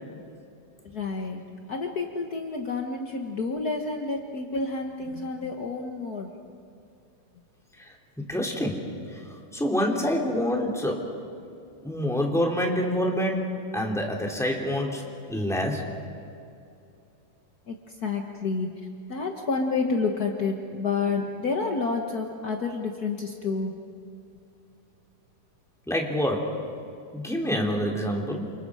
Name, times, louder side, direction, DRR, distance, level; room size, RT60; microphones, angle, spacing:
voice 1, 0.8-1.4 1.7-6.3 17.7-18.7 19.1-23.9, left 4 dB, 70° left, 3 dB, 0.9 m, -29 dB
voice 2, 7.8-8.9 9.1-9.2 9.5-11.1 11.8-15.0 15.3-15.8 25.9-26.5 27.1-28.5, equal, ahead, 0 dB, 2.3 m, -27 dB
29.0 x 27.5 x 4.9 m, 2.6 s
omnidirectional pair, 3.8 m